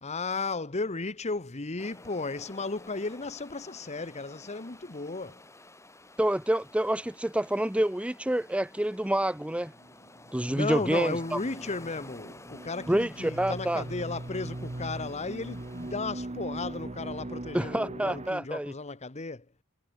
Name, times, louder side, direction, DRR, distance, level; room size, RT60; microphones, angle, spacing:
voice 1, 0.0-5.4 10.5-19.4, left 3 dB, 30° left, 1.1 m, -35 dB
sound 1, 1.8-15.9, left 2 dB, 15° left, 5.9 m, -52 dB
voice 2, 6.2-9.7 10.3-11.4 12.9-13.8 17.5-18.7, right 1 dB, 5° right, 0.6 m, -28 dB
sound 2, 9.8-18.3, right 1 dB, 30° right, 1.0 m, -40 dB
head